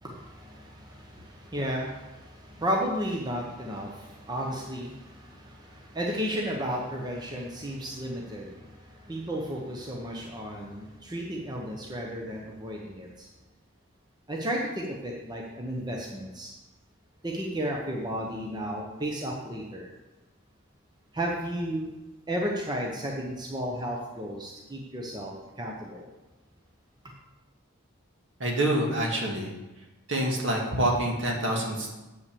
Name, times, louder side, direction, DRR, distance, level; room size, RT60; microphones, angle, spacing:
voice 1, 0.0-13.3 14.3-16.5 17.2-19.9 21.1-21.9 22.3-26.1, equal, 20° right, -1 dB, 0.9 m, -33 dB
voice 2, 28.4-29.5 30.1-31.9, right 1 dB, 60° right, 0 dB, 2.0 m, -26 dB
8.1 x 5.9 x 6.9 m, 1.1 s
head